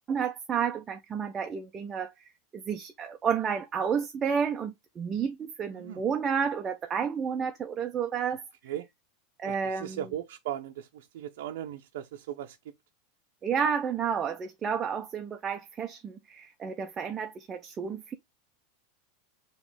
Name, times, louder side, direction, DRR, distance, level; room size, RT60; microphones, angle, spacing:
voice 1, 0.1-2.1 2.5-8.4 9.4-10.1 13.4-18.2, right 7 dB, 20° right, 0.5 m, -31 dB
voice 2, 9.5-12.6, right 11 dB, 70° right, 0.6 m, -38 dB
5.2 x 3.0 x 3.3 m
supercardioid pair, 160°, 0 cm